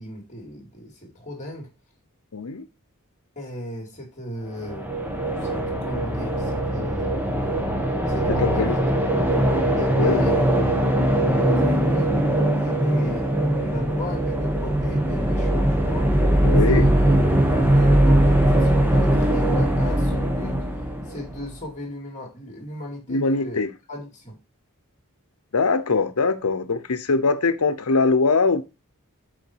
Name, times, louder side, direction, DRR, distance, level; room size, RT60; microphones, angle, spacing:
voice 1, 0.0-1.7 3.4-5.1 5.4-7.2 8.1-9.3 9.8-10.9 11.5-16.1 16.7-17.0 17.5-20.6 21.1-23.6 23.9-24.4, equal, 35° left, 2.8 m, -36 dB
voice 2, 2.3-2.7 8.3-8.8 10.0-10.2 16.4-16.9 23.1-23.7 25.5-28.6, left 4 dB, 85° left, 0.8 m, -22 dB
sound 1, 4.5-21.5, right 1 dB, 10° right, 1.1 m, -21 dB
7.1 x 4.7 x 4.6 m
head